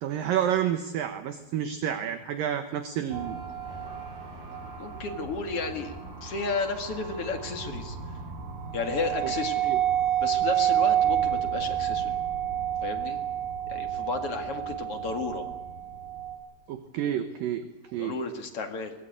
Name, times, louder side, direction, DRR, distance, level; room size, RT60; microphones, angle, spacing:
voice 1, 0.0-3.4 9.2-9.3 9.6-9.8 16.7-17.7 17.9-18.2, right 10 dB, 70° right, 8 dB, 2.2 m, -29 dB
sound 1, 3.1-16.4, right 10 dB, 45° right, 7.6 m, -30 dB
voice 2, 4.8-8.0 8.7-9.7 10.2-12.2 12.8-13.2 13.7-15.5 18.0-18.9, left 4 dB, 45° left, 5 dB, 2.0 m, -33 dB
23.0 x 19.5 x 8.9 m, 1.1 s
omnidirectional pair, 5.3 m